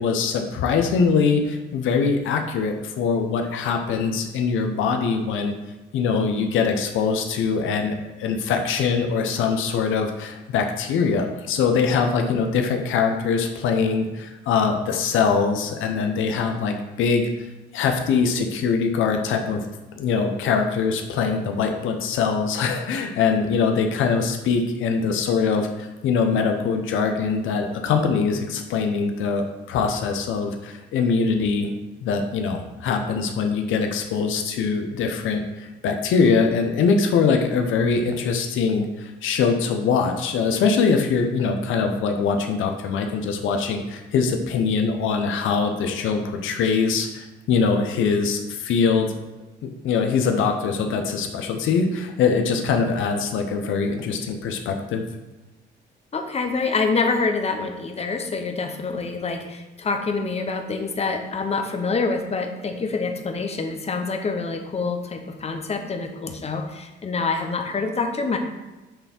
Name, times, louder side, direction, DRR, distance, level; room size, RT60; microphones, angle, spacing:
voice 1, 0.0-5.5 5.9-17.3 17.7-19.6 20.0-31.7 32.0-49.1 49.6-55.0, left 5 dB, 85° left, 4 dB, 0.8 m, -23 dB
voice 2, 56.1-68.4, left 4 dB, 30° left, 4 dB, 0.9 m, -26 dB
6.8 x 3.4 x 5.8 m, 1.1 s
cardioid pair, 90°, 20 cm